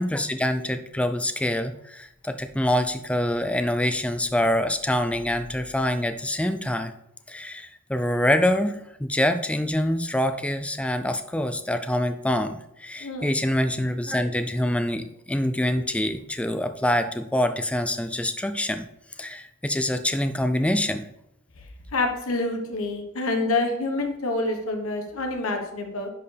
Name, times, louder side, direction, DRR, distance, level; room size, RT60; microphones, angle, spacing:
voice 1, 0.0-6.9 7.3-18.8 19.2-21.0, left 1 dB, 5° left, 8 dB, 0.4 m, -25 dB
voice 2, 13.0-13.3 21.9-26.1, left 2 dB, 85° left, 4 dB, 1.2 m, -27 dB
10.5 x 4.5 x 3.4 m, 0.80 s
head